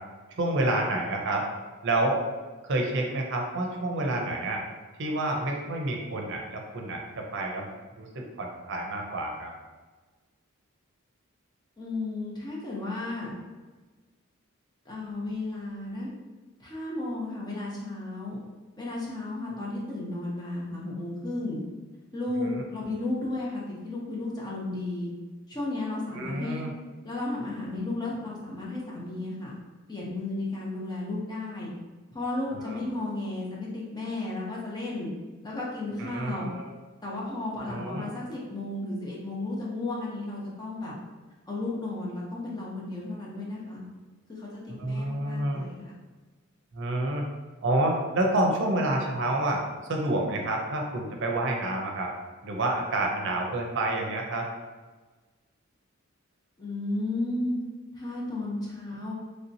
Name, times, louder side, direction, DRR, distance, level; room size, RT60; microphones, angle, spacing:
voice 1, 0.4-1.5 1.8-2.2 2.6-4.6 5.0-7.7 8.0-9.5 22.4-22.6 26.1-26.7 32.6-32.8 36.0-36.7 37.7-38.1 44.8-45.7 46.7-47.3 47.6-49.6 49.9-52.1 52.4-54.5, right 1 dB, 60° right, 1 dB, 0.6 m, -28 dB
voice 2, 11.8-13.3 14.9-16.1 16.6-18.4 18.8-21.6 22.1-25.1 25.5-26.6 27.0-29.5 29.9-31.7 32.1-35.1 35.4-36.5 37.0-40.9 41.5-43.8 44.3-45.9 56.6-57.6 57.9-59.1, left 2 dB, 20° left, -5 dB, 0.7 m, -33 dB
3.2 x 2.8 x 2.7 m, 1.3 s
head